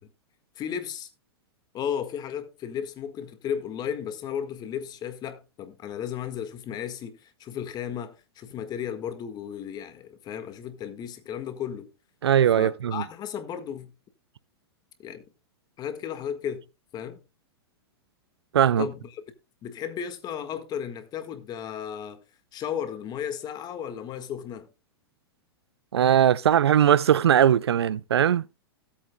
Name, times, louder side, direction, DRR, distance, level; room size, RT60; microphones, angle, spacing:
voice 1, 0.5-1.1 1.7-11.9 12.5-13.9 15.0-15.2 15.8-16.6 16.9-17.2 18.8-19.2 19.6-22.2 22.5-24.7, left 8 dB, 30° left, 1.7 m, -34 dB
voice 2, 12.2-13.0 18.5-18.9 25.9-28.4, right 9 dB, 85° right, 0.4 m, -20 dB
17.0 x 8.6 x 2.2 m
hypercardioid pair, 110°, 13 cm